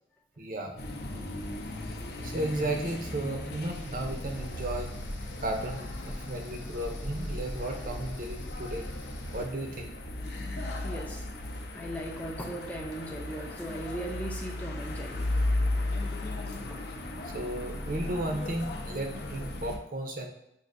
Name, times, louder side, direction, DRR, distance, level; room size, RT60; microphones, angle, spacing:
voice 1, 0.4-0.8 1.1-1.3 1.9-2.0 2.2-5.0 5.4-8.9 9.3-9.9 16.5-16.8 17.2-20.3, right 1 dB, 45° right, 3 dB, 0.6 m, -34 dB
sound 1, 0.8-19.8, left 1 dB, 55° left, 0.5 m, -36 dB
sound 2, 3.7-9.4, left 1 dB, 90° left, 0.8 m, -40 dB
voice 2, 10.8-11.3 11.7-15.4 16.7-16.8, right 1 dB, 10° left, 0 dB, 0.4 m, -38 dB
6.1 x 2.5 x 2.5 m, 0.86 s
head